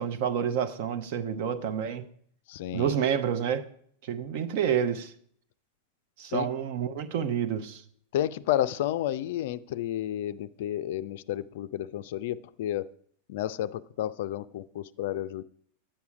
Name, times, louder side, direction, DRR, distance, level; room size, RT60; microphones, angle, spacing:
voice 1, 0.0-2.1 2.7-3.7 4.0-5.1 6.2-7.8, right 8 dB, 50° right, 0.8 m, -29 dB
voice 2, 2.5-2.9 6.3-6.5 8.1-12.9 13.3-15.4, left 12 dB, 55° left, 0.4 m, -31 dB
10.0 x 8.3 x 4.8 m
figure-of-eight pair, 90°, 0 cm